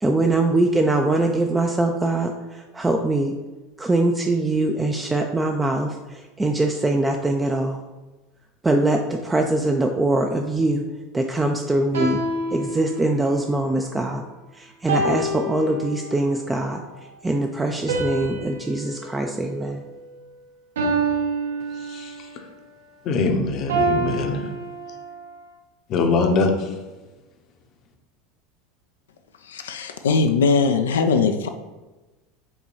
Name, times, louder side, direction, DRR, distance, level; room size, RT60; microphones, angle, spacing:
voice 1, 0.0-3.3 3.8-7.8 8.6-10.8 11.1-12.2 12.5-14.2 14.5-16.8 17.2-19.8, right 2 dB, 15° right, 3 dB, 0.4 m, -22 dB
sound 1, 11.9-13.3 14.9-16.3 17.9-20.2 20.8-22.3 23.7-25.3, right 2 dB, 75° right, 1.2 m, -27 dB
voice 2, 23.1-24.4 25.9-26.5, left 3 dB, 45° left, 4 dB, 0.7 m, -22 dB
voice 3, 29.4-31.5, left 4 dB, 75° left, 6 dB, 0.3 m, -20 dB
5.2 x 2.3 x 4.5 m, 1.1 s
figure-of-eight pair, 80°, 0 cm